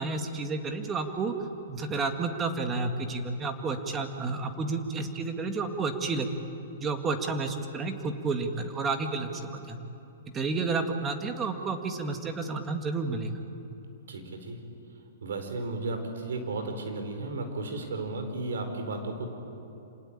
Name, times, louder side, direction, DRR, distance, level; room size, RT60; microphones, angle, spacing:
voice 1, 0.0-1.3 1.7-6.4 6.8-9.9 10.3-13.3, right 3 dB, 20° right, 6 dB, 1.9 m, -31 dB
voice 2, 14.1-14.6 15.2-19.3, right 2 dB, 80° right, 6 dB, 4.4 m, -34 dB
27.0 x 19.0 x 8.7 m, 2.9 s
hypercardioid pair, 145°, 0 cm